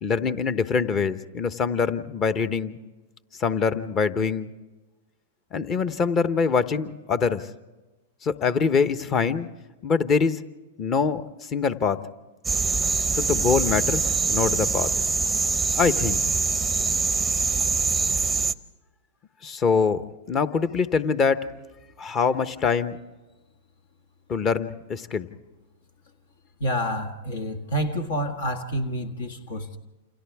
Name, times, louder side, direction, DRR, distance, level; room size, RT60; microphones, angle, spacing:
voice 1, 0.0-2.8 3.4-4.5 5.5-7.5 8.2-9.5 9.8-10.4 10.8-12.0 13.1-14.9 15.7-16.2 19.4-21.5 22.0-23.0 24.3-25.3, left 5 dB, 30° left, 13 dB, 1.0 m, -24 dB
sound 1, 12.4-18.5, right 4 dB, 10° right, 0.7 m, -24 dB
voice 2, 26.6-29.8, equal, 75° left, 7 dB, 1.7 m, -28 dB
29.0 x 27.5 x 3.6 m, 1.1 s
hypercardioid pair, 110°, 0 cm